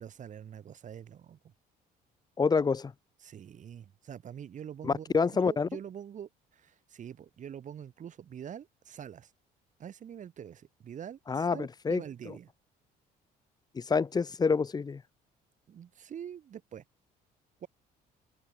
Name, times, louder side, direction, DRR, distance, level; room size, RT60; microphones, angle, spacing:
voice 1, 0.0-1.4 3.2-5.1 5.4-9.3 9.8-12.5 15.7-16.8 17.6-17.7, right 9 dB, 45° right, 2.8 m, -45 dB
voice 2, 2.4-2.9 4.8-5.7 11.3-12.0 13.7-15.0, left 5 dB, 25° left, 0.8 m, -27 dB
open air
cardioid pair, 110°, 17 cm